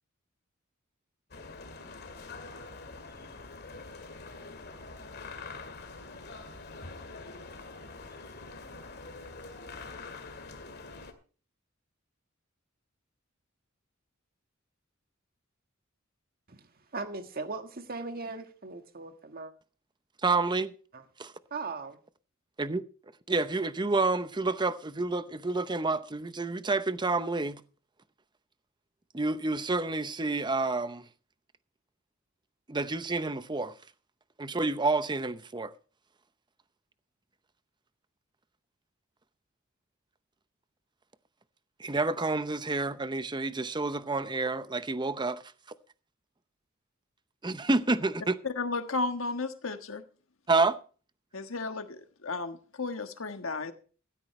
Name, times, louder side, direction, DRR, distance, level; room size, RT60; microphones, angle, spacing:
sound 1, 1.3-11.1, left 3 dB, 55° left, 2.1 m, -45 dB
voice 1, 16.9-19.5 20.9-21.0 21.5-22.0, right 3 dB, 45° right, 1.6 m, -38 dB
voice 2, 20.2-20.7 21.2-21.3 22.6-22.8 23.3-27.6 29.1-31.0 32.7-33.7 34.4-35.7 41.8-45.4 47.4-48.4 50.5-50.8, right 3 dB, 20° right, 0.7 m, -29 dB
voice 3, 48.4-50.0 51.3-53.7, left 3 dB, 70° left, 1.4 m, -34 dB
16.0 x 13.0 x 3.2 m
head